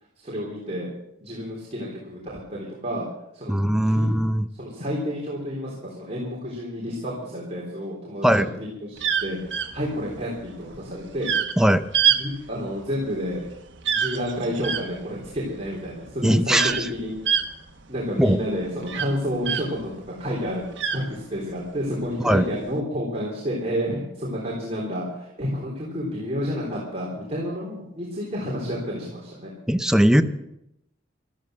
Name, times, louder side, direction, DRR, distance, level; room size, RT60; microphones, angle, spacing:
voice 1, 0.2-0.9 1.2-2.2 2.5-3.0 3.3-4.1 4.6-11.3 12.2-13.4 13.8-17.4 17.9-20.7 20.9-29.5, equal, 35° right, -4 dB, 3.8 m, -30 dB
voice 2, 3.5-4.4 8.2-8.5 11.6-11.8 16.2-16.8 18.2-18.4 22.2-22.5 29.7-30.2, equal, 5° right, 9 dB, 0.7 m, -19 dB
sound 1, 9.0-19.9 20.3-21.7 22.4-22.7, right 8 dB, 70° right, 1.5 m, -26 dB
14.0 x 13.5 x 6.4 m, 0.81 s
head